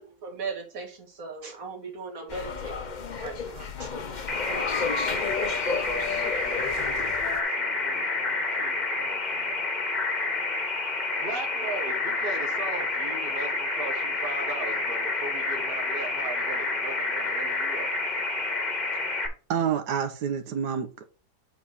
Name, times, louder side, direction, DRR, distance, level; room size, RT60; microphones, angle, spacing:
voice 1, 0.0-3.9, right 4 dB, 55° right, 3 dB, 2.1 m, -38 dB
sound 1, 2.3-7.4, left 5 dB, 50° left, 0.5 m, -32 dB
sound 2, 4.3-19.3, left 3 dB, 30° left, 1.1 m, -29 dB
voice 2, 5.6-9.8 11.2-17.9, right 3 dB, 35° right, 3 dB, 1.5 m, -39 dB
voice 3, 19.5-21.0, right 8 dB, 75° right, 8 dB, 1.4 m, -28 dB
8.1 x 4.0 x 4.1 m, 0.35 s
omnidirectional pair, 1.8 m